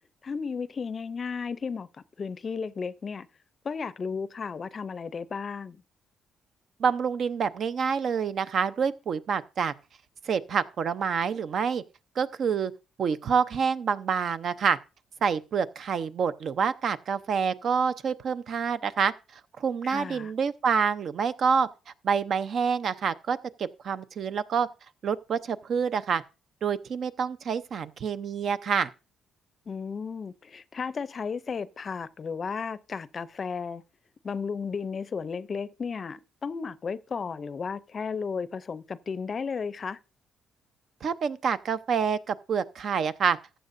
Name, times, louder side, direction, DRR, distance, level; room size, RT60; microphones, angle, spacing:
voice 1, 0.2-3.3 3.6-5.8 19.8-20.3 29.7-33.8 34.2-40.0, left 5 dB, 45° left, 0.5 m, -34 dB
voice 2, 6.8-9.7 10.2-11.8 12.2-12.7 13.0-14.8 15.2-19.1 19.6-21.7 22.0-24.7 25.0-26.2 26.6-28.9 41.0-43.4, right 6 dB, 60° right, 0.7 m, -27 dB
14.5 x 8.9 x 2.6 m
cardioid pair, 90°, 0 cm